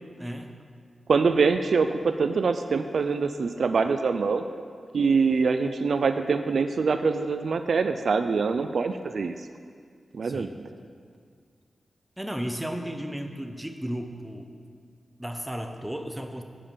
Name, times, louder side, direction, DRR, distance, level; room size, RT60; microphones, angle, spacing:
voice 1, 0.2-0.6 10.2-10.5 12.2-14.5 15.2-16.4, equal, 5° right, 5 dB, 0.9 m, -34 dB
voice 2, 1.1-4.4 4.9-9.3 10.1-10.7, right 4 dB, 75° right, 9 dB, 0.3 m, -24 dB
8.7 x 5.0 x 7.1 m, 2.1 s
cardioid pair, 55°, 0 cm